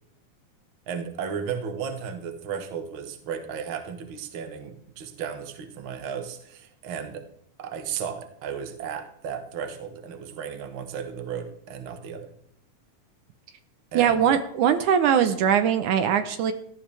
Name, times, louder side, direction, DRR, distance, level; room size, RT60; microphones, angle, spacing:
voice 1, 0.9-7.2 7.6-12.3 13.9-14.2, right 7 dB, 50° right, 7 dB, 1.9 m, -34 dB
voice 2, 13.9-16.5, right 8 dB, 75° right, 9 dB, 2.3 m, -21 dB
17.0 x 13.5 x 3.4 m, 0.69 s
omnidirectional pair, 3.7 m